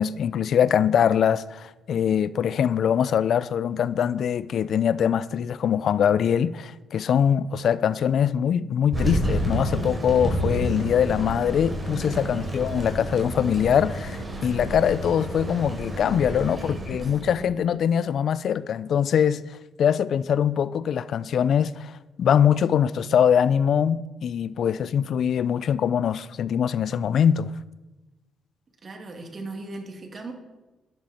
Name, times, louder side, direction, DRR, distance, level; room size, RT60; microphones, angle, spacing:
voice 1, 0.0-19.4 19.8-21.9 22.2-27.5, left 8 dB, 65° left, 0.4 m, -23 dB
Thunder, 8.9-17.4, right 1 dB, 20° right, 4.6 m, -30 dB
voice 2, 11.9-12.6 16.3-17.7 28.8-30.3, right 2 dB, 40° right, 2.4 m, -39 dB
12.0 x 10.5 x 4.3 m
cardioid pair, 90°, 0 cm